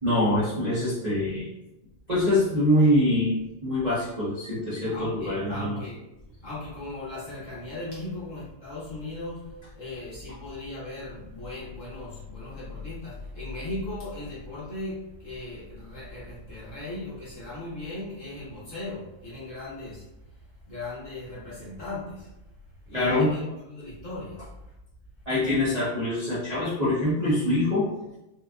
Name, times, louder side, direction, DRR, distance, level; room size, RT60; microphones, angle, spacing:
voice 1, 0.0-1.5 2.1-5.8 22.9-23.3 25.3-27.9, left 1 dB, 45° right, -11 dB, 0.5 m, -24 dB
voice 2, 4.9-6.0 6.4-20.1 20.3-22.3 22.9-24.4, left 2 dB, 50° left, -8 dB, 1.0 m, -38 dB
4.3 x 2.4 x 2.4 m, 0.93 s
omnidirectional pair, 2.2 m